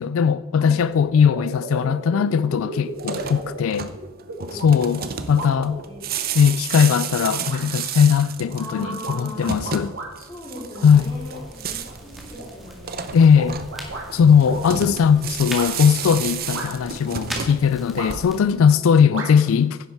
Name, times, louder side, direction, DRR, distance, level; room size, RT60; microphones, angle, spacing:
voice 1, 0.0-3.9 4.5-5.0 5.3-5.8 6.3-9.9 10.8-11.0 13.1-13.6 14.1-19.8, left 7 dB, 75° left, 0.3 m, -18 dB
sound 1, 0.7-0.8 1.1-6.2 6.7-7.2 7.5-7.6 8.2-10.1 10.5-11.4 11.8-14.1 14.5-14.6 15.5-15.7 16.5-17.0 18.0-18.4 19.1-19.3, right 2 dB, 65° right, 2.3 m, -35 dB
sound 2, 2.9-18.6, right 7 dB, 45° right, 0.7 m, -32 dB
voice 2, 8.6-9.5 10.2-13.2, equal, 20° left, 3.6 m, -38 dB
sound 3, 10.9-18.4, equal, ahead, 1.9 m, -40 dB
10.5 x 9.8 x 4.6 m
head